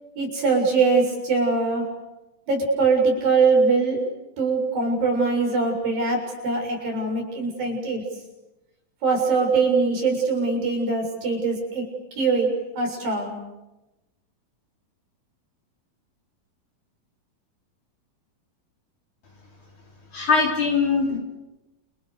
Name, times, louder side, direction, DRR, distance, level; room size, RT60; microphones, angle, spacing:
voice 1, 0.2-1.9 2.5-4.1 4.4-8.0 9.0-11.8 12.2-13.4, right 4 dB, 70° right, 2 dB, 8.7 m, -22 dB
voice 2, 20.1-21.2, left 4 dB, 55° left, 0 dB, 5.2 m, -21 dB
29.5 x 29.5 x 6.7 m, 0.98 s
omnidirectional pair, 4.2 m